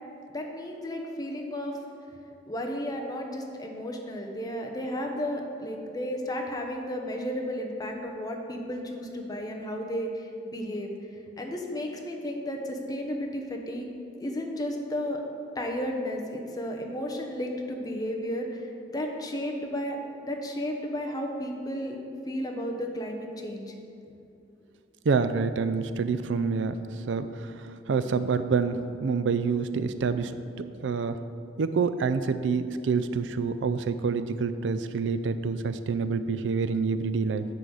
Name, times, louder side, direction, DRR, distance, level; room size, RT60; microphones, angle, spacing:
voice 1, 0.3-1.8 2.5-10.9 11.4-13.9 14.2-15.2 15.5-22.0 22.3-23.7, equal, 20° left, 1 dB, 0.8 m, -33 dB
voice 2, 25.1-26.7 27.1-27.5 27.9-30.3 30.8-31.2 31.6-37.4, right 5 dB, 85° right, 11 dB, 0.4 m, -27 dB
9.6 x 3.9 x 6.2 m, 2.6 s
head